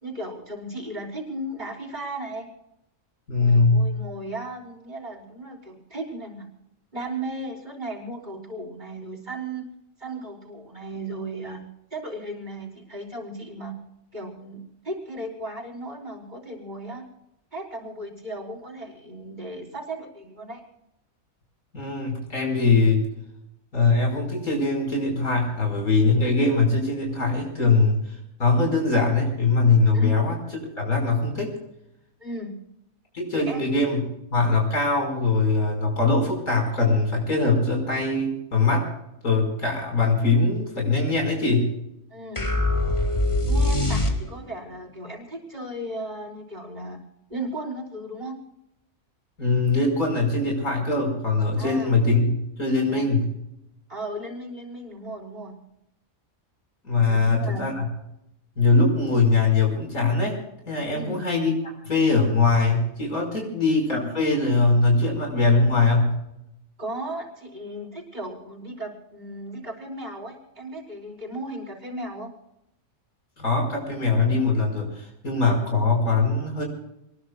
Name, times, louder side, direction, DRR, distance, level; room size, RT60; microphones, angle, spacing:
voice 1, 0.0-2.5 3.4-6.4 6.9-9.6 10.0-11.6 11.9-13.7 14.1-17.0 17.5-20.6 29.9-30.2 32.2-32.5 33.3-33.6 42.1-42.5 43.5-47.0 47.3-48.4 51.6-52.0 52.8-53.1 53.9-55.5 57.1-57.7 60.9-61.2 63.3-63.6 66.8-72.3, right 1 dB, 30° right, -1 dB, 4.7 m, -35 dB
voice 2, 3.3-4.0 21.7-23.0 23.7-28.0 28.4-30.4 30.8-31.6 33.1-34.0 34.3-38.9 39.2-41.7 49.4-53.3 56.8-57.9 58.6-60.4 60.7-61.5 61.8-66.2 73.4-76.6, left 3 dB, 85° left, 0 dB, 5.8 m, -22 dB
sound 1, 42.4-44.6, left 1 dB, 20° left, 2.3 m, -23 dB
27.5 x 20.5 x 2.4 m, 0.83 s
omnidirectional pair, 1.5 m